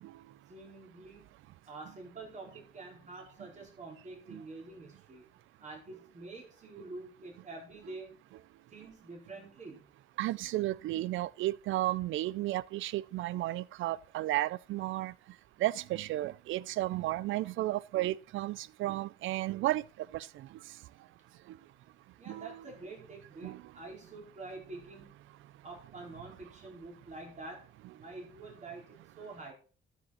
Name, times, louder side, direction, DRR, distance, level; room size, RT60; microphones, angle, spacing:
voice 1, 0.5-1.3 1.7-5.3 5.6-8.1 8.7-9.8 22.2-25.3 25.6-29.5, right 3 dB, 35° right, 4.7 m, -47 dB
voice 2, 10.2-15.1 15.6-20.6 21.5-21.6 22.3-22.6 23.4-23.6, right 16 dB, 80° right, 0.4 m, -33 dB
13.0 x 6.3 x 4.1 m
cardioid pair, 90°, 20 cm